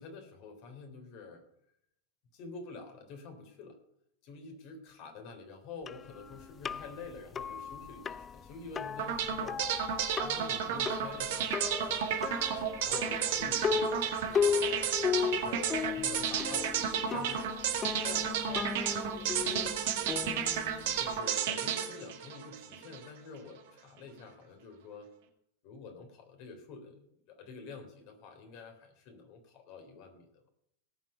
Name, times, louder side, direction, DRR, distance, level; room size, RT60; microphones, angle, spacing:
voice 1, 0.0-1.4 2.3-3.8 4.2-9.6 10.2-14.9 15.3-17.5 18.0-20.3 21.0-25.1 25.6-27.0 27.3-30.4, left 4 dB, 50° left, 5 dB, 3.6 m, -48 dB
sound 1, 5.9-21.2, left 7 dB, 25° left, 0.4 m, -36 dB
sound 2, 9.0-23.1, right 8 dB, 60° right, 2.0 m, -32 dB
18.0 x 6.2 x 5.6 m, 0.74 s
figure-of-eight pair, 95°, 0 cm